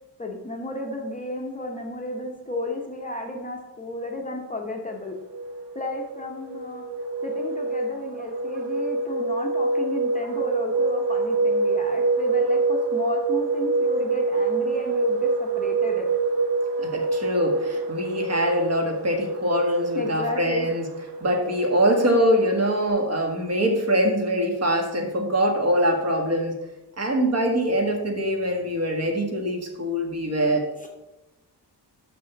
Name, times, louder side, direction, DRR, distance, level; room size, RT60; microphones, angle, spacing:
voice 1, 0.2-5.2 5.7-6.8 7.2-16.1 19.9-20.7, left 2 dB, 20° left, 0 dB, 0.9 m, -33 dB
sound 1, 5.2-22.9, right 3 dB, 90° right, 1.0 m, -26 dB
voice 2, 16.8-20.8 21.2-26.5 27.0-30.6, equal, 40° right, 2 dB, 1.5 m, -23 dB
6.2 x 6.1 x 5.8 m, 0.96 s
wide cardioid pair, 175°, 41 cm